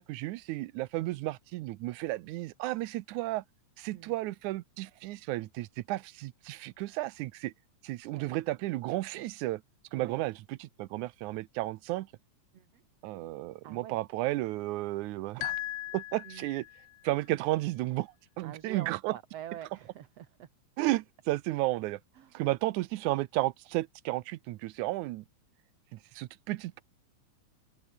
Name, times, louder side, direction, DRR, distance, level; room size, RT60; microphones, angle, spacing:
voice 1, 0.0-3.4 3.8-7.5 7.8-9.6 9.9-12.1 13.0-15.6 15.9-16.7 17.0-19.1 20.8-22.0 22.3-25.3 25.9-26.8, right 18 dB, 90° right, 2.1 m, -33 dB
voice 2, 9.9-10.2 12.5-12.8 13.6-14.0 16.2-16.5 18.4-20.5 22.2-22.3, right 11 dB, 60° right, 2.3 m, -45 dB
sound 1, 15.4-17.0, left 15 dB, 70° left, 1.7 m, -38 dB
open air
omnidirectional pair, 3.4 m